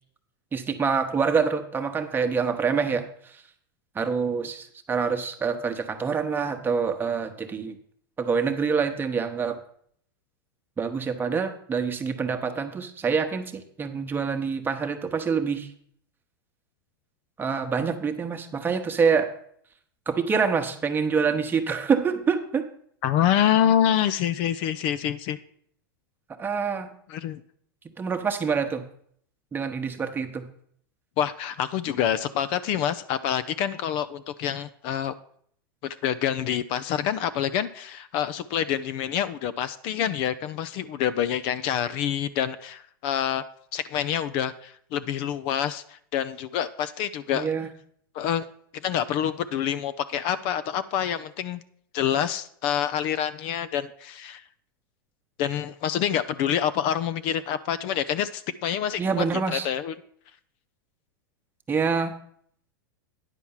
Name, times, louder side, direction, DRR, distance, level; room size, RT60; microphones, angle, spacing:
voice 1, 0.5-3.4 3.9-7.8 8.2-9.6 10.8-15.7 17.4-19.3 20.1-22.7 26.4-26.9 27.8-28.9 29.5-30.5 47.3-47.7 59.0-59.7 61.7-62.2, right 5 dB, 15° right, 6 dB, 1.0 m, -26 dB
voice 2, 23.0-25.4 27.1-27.4 31.2-35.1 35.8-43.4 43.7-47.5 48.1-48.4 48.8-51.6 51.9-54.4 55.4-59.9, left 10 dB, 45° left, 12 dB, 0.5 m, -27 dB
9.9 x 4.5 x 7.2 m, 0.63 s
hypercardioid pair, 120°, 12 cm